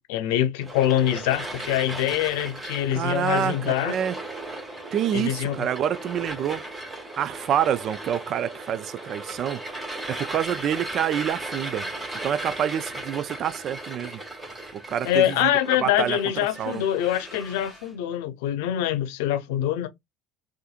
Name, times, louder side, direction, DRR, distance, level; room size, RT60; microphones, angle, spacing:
voice 1, 0.0-4.0 5.1-5.7 15.0-19.9, left 12 dB, 80° left, 0.7 m, -24 dB
sound 1, 0.6-17.9, right 2 dB, 15° right, 1.7 m, -37 dB
voice 2, 2.9-4.2 4.9-6.6 7.2-9.6 10.1-11.9 12.2-14.2 14.7-15.5 15.8-16.2 16.6-16.8, right 9 dB, 50° right, 0.3 m, -27 dB
4.2 x 2.5 x 2.4 m
supercardioid pair, 105°, 0 cm